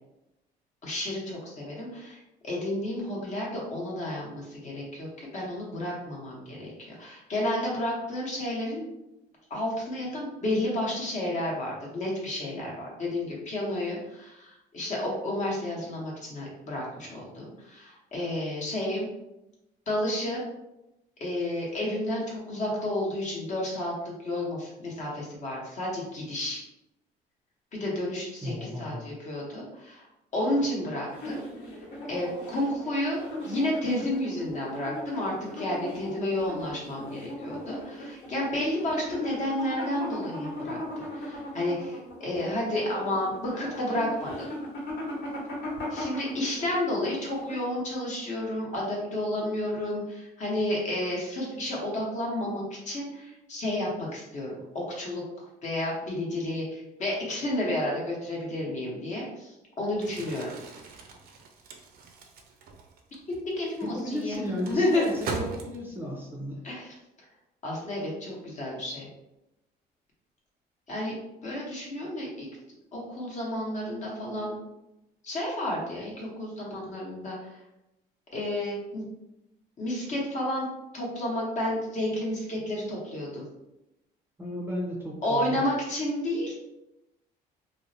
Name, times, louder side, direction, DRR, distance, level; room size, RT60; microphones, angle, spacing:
voice 1, 0.8-8.9 9.5-19.1 19.9-20.4 21.2-26.6 27.7-31.4 31.7-31.8 32.1-44.5 45.9-55.2 55.6-60.5 63.5-65.1 66.6-66.9 67.6-69.1 70.9-71.1 71.4-72.5 72.9-74.5 75.2-77.6 78.3-79.1 79.8-80.7 80.9-83.5 85.2-86.5, left 1 dB, 45° left, -3 dB, 0.9 m, -31 dB
voice 2, 28.4-29.0 63.8-66.6 84.4-85.7, left 1 dB, 10° right, -3 dB, 0.5 m, -34 dB
sound 1, 31.0-47.9, left 1 dB, 75° left, 1.2 m, -38 dB
Crumpling crinkling, 59.9-66.1, right 4 dB, 65° right, 0.5 m, -41 dB
2.5 x 2.0 x 2.7 m, 0.92 s
cardioid pair, 110°, 17 cm